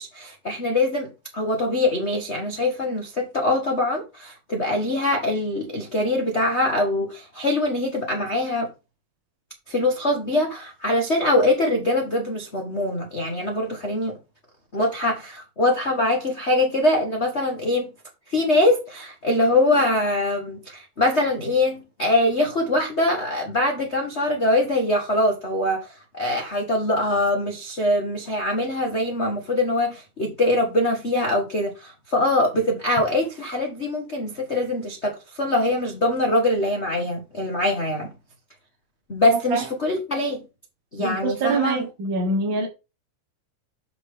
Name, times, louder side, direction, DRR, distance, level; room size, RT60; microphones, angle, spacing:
voice 1, 0.0-8.7 9.7-14.2 14.7-17.9 18.3-38.1 39.1-40.4 40.9-41.9, left 1 dB, 80° left, 0.6 m, -23 dB
voice 2, 41.0-42.7, right 3 dB, 55° right, 1.4 m, -24 dB
6.8 x 6.5 x 3.7 m
omnidirectional pair, 3.7 m